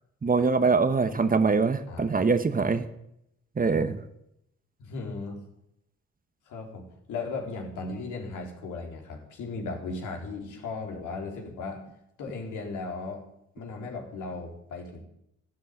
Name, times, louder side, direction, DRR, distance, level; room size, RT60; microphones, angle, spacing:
voice 1, 0.2-2.9 3.6-4.0, right 4 dB, 30° right, 10 dB, 1.3 m, -23 dB
voice 2, 4.8-5.4 6.5-6.8 7.1-11.8 12.2-13.2 13.5-15.1, left 3 dB, 80° left, 1 dB, 4.1 m, -36 dB
12.5 x 12.0 x 9.6 m, 0.80 s
cardioid pair, 90°, 30 cm